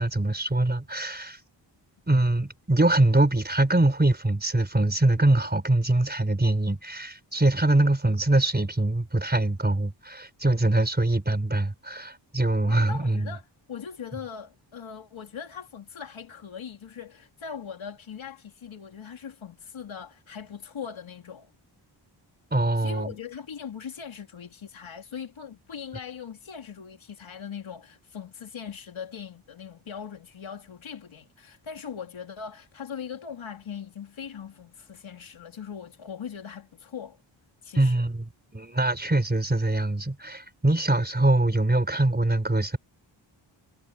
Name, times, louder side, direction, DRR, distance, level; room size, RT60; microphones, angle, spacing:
voice 1, 0.0-1.4 2.1-13.3 22.5-23.2 37.8-42.8, right 2 dB, 20° right, 4.6 m, -23 dB
voice 2, 12.6-21.5 22.8-37.2 37.6-38.1, left 7 dB, 90° left, 3.4 m, -40 dB
wide cardioid pair, 75°, 46 cm